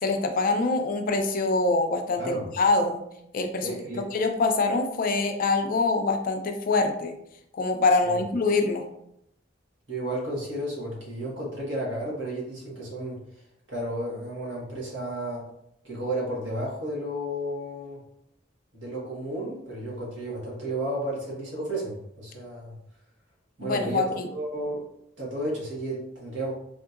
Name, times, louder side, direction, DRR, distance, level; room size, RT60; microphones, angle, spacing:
voice 1, 0.0-3.0 3.3-3.8 4.1-7.1 7.6-8.9 23.6-24.3, left 3 dB, 50° left, 5 dB, 0.4 m, -24 dB
voice 2, 3.6-4.0 8.0-8.2 9.9-13.2 13.7-15.4 15.8-18.0 18.7-22.7 23.6-24.8 25.2-26.5, right 1 dB, 75° right, -5 dB, 1.4 m, -32 dB
3.6 x 2.7 x 2.4 m, 0.76 s
head